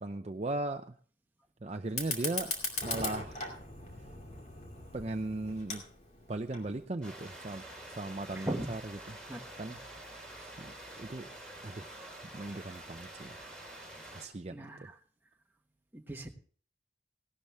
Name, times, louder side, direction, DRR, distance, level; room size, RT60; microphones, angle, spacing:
voice 1, 0.0-0.9 1.6-2.5 2.8-3.4 4.9-5.8 6.3-8.8 9.1-9.2 9.6-9.8 10.6-11.3 11.6-12.0 12.3-13.4 14.1-14.9, right 2 dB, 35° right, 6 dB, 0.5 m, -38 dB
Fire, 1.8-6.8, left 3 dB, 40° left, 2.5 m, -39 dB
rain with thunders, 7.0-14.3, right 1 dB, 5° left, 3.6 m, -47 dB
voice 2, 8.3-8.7 9.3-9.4 9.7-9.8 14.5-15.0 15.9-16.4, right 1 dB, 10° right, 2 dB, 1.2 m, -38 dB
17.0 x 12.0 x 3.5 m, 0.44 s
head